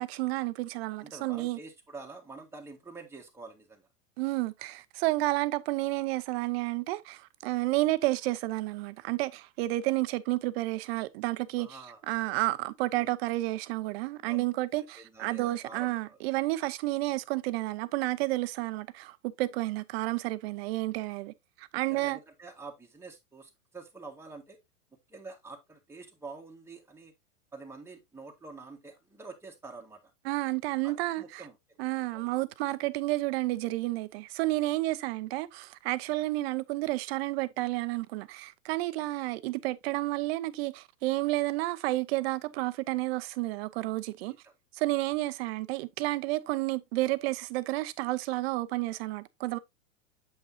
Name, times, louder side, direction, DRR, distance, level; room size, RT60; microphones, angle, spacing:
voice 1, 0.0-1.6 4.2-11.8 12.1-22.2 30.2-31.4 31.8-44.4 44.8-49.6, right 19 dB, 50° right, 0.7 m, -31 dB
voice 2, 1.0-3.9 11.6-12.0 14.2-14.4 14.8-16.2 21.9-24.6 25.1-27.1 27.5-30.0 30.8-31.8 32.1-32.3 44.3-44.5, right 3 dB, 5° right, 1.6 m, -47 dB
7.7 x 5.4 x 2.7 m
hypercardioid pair, 105°, 39 cm